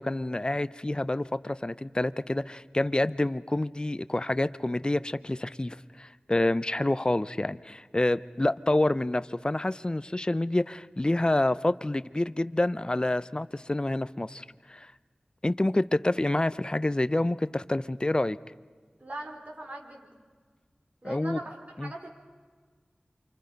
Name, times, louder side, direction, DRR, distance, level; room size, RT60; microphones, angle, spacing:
voice 1, 0.0-14.9 15.4-18.4 21.0-21.4 21.8-21.9, left 1 dB, 30° left, 14 dB, 0.7 m, -28 dB
voice 2, 19.0-20.1 21.0-22.1, right 1 dB, 50° right, 0 dB, 4.5 m, -40 dB
28.5 x 26.0 x 5.3 m, 1.5 s
wide cardioid pair, 60°, 3 cm